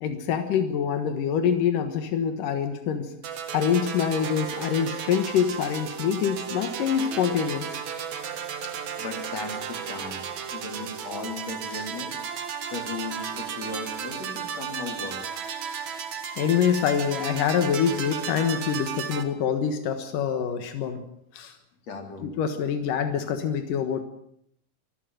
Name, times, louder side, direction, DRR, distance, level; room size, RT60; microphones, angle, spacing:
voice 1, 0.0-3.1 3.5-7.7 11.7-11.8 16.4-21.0 21.3-21.6 22.2-24.0, left 8 dB, 90° left, 8 dB, 3.1 m, -25 dB
sound 1, 3.2-19.2, right 7 dB, 65° right, 3.0 m, -34 dB
voice 2, 9.0-10.2 10.5-12.2 12.7-15.4 21.9-22.3, left 3 dB, 55° left, 4 dB, 5.1 m, -36 dB
24.5 x 15.5 x 9.3 m, 0.73 s
omnidirectional pair, 3.7 m